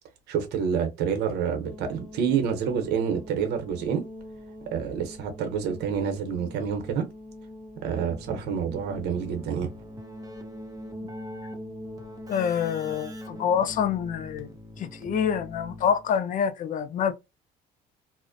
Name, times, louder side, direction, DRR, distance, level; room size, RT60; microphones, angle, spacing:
voice 1, 0.3-4.0 4.7-7.1 7.8-9.7, right 7 dB, 80° right, 0.7 m, -28 dB
sound 1, 1.6-14.0, left 1 dB, 10° left, 0.9 m, -45 dB
Keyboard (musical), 7.9-16.2, equal, 20° right, 0.6 m, -42 dB
voice 2, 12.3-14.5 14.8-17.1, left 8 dB, 50° left, 0.4 m, -26 dB
2.4 x 2.0 x 2.5 m
cardioid pair, 110°, 17 cm